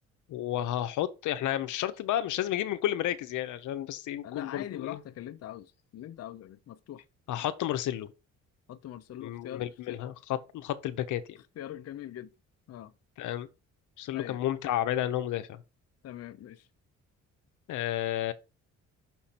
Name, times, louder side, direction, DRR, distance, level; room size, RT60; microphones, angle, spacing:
voice 1, 0.3-5.0 7.3-8.1 9.2-10.1 10.5-11.4 13.2-13.5 14.0-15.6 17.7-18.3, left 12 dB, 80° left, 0.8 m, -31 dB
voice 2, 4.2-7.0 8.7-10.0 11.4-12.3 12.7-12.9 14.1-14.4 16.0-16.7, left 11 dB, 55° left, 0.6 m, -42 dB
6.1 x 5.8 x 4.3 m
cardioid pair, 90°, 30 cm